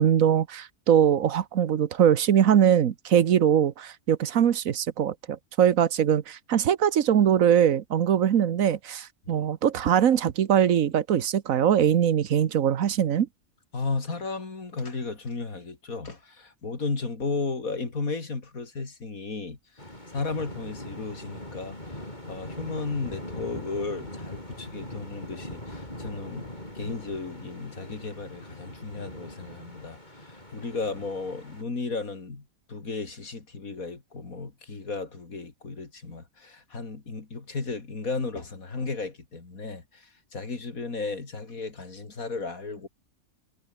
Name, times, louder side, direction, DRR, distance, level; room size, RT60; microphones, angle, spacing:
voice 1, 0.0-13.3, right 9 dB, 80° right, 1.4 m, -22 dB
voice 2, 13.7-42.9, left 3 dB, 90° left, 3.6 m, -34 dB
sound 1, 19.8-31.6, left 1 dB, 30° left, 7.3 m, -41 dB
omnidirectional pair, 1.4 m